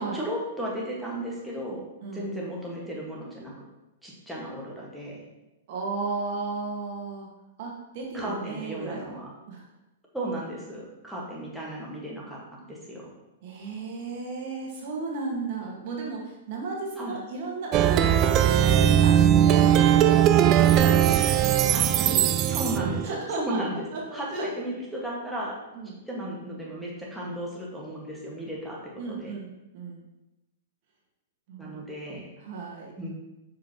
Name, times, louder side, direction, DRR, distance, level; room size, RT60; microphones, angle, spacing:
voice 1, 0.0-1.8 2.1-3.5 4.0-5.2 8.1-9.3 10.1-13.1 17.0-17.2 21.7-21.8 22.5-23.8 24.1-25.6 26.1-29.3 31.6-32.3 33.0-33.1, equal, ahead, -5 dB, 1.5 m, -35 dB
voice 2, 5.7-7.3 7.6-9.1 9.5-9.7 13.4-22.6 23.0-23.6 23.9-24.5 25.7-26.0 29.0-30.0 31.5-31.8 32.4-32.9, right 4 dB, 55° right, -1 dB, 1.5 m, -35 dB
Plucked string instrument, 17.7-23.1, right 10 dB, 35° right, 0.3 m, -19 dB
6.6 x 5.2 x 2.9 m, 0.99 s
hypercardioid pair, 120°, 0 cm